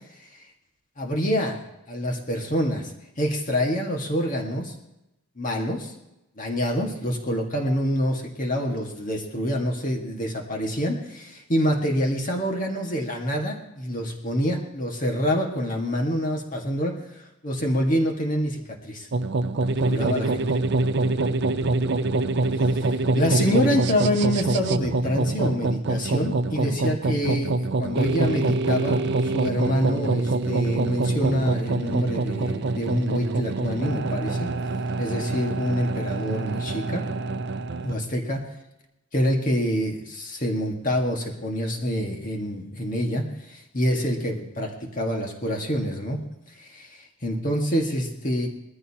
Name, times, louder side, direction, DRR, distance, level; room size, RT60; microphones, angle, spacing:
voice 1, 1.0-1.6 1.9-2.9 3.2-4.7 5.4-5.9 6.4-19.1 19.9-20.4 22.8-22.9 23.2-34.5 35.0-37.1 37.8-38.4 39.1-46.2 46.6-48.5, equal, 40° left, 1 dB, 1.7 m, -26 dB
sound 1, 19.1-38.0, right 3 dB, 60° right, 0.5 m, -25 dB
20.5 x 14.5 x 2.9 m, 0.91 s
head